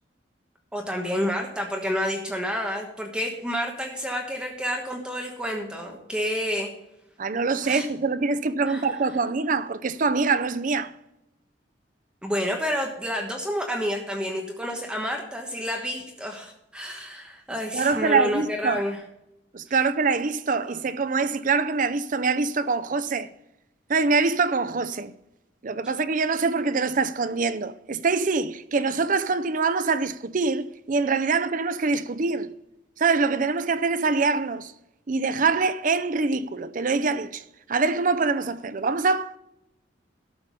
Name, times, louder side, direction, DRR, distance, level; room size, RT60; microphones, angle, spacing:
voice 1, 0.7-6.7 7.6-7.9 8.7-8.9 12.2-19.0, equal, 5° right, 1.2 m, -29 dB
voice 2, 7.2-10.9 17.7-18.8 19.5-23.3 23.9-25.1 25.6-32.5 33.0-34.7 35.1-39.4, right 4 dB, 45° right, 0.5 m, -24 dB
12.5 x 6.8 x 5.3 m
head